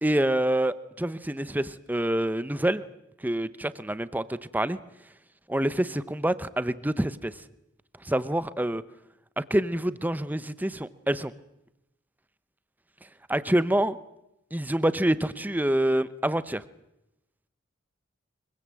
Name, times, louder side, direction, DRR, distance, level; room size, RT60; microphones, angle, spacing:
voice 1, 0.0-2.9 3.2-4.8 5.5-7.3 8.0-8.8 9.4-11.3 13.3-13.9 14.5-16.6, right 1 dB, 10° right, 15 dB, 0.8 m, -26 dB
24.5 x 23.0 x 7.7 m, 0.86 s
head